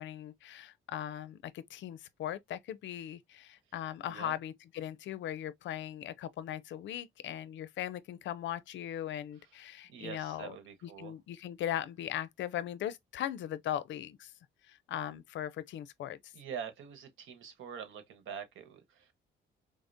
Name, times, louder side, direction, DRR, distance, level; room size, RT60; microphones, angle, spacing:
voice 1, 0.0-10.5 10.8-14.3 14.7-16.3, left 11 dB, 70° left, 0.5 m, -39 dB
voice 2, 4.0-4.3 9.4-9.5 9.9-11.1 16.3-19.1, right 7 dB, 80° right, 1.1 m, -45 dB
4.9 x 2.0 x 2.6 m
cardioid pair, 90°, 20 cm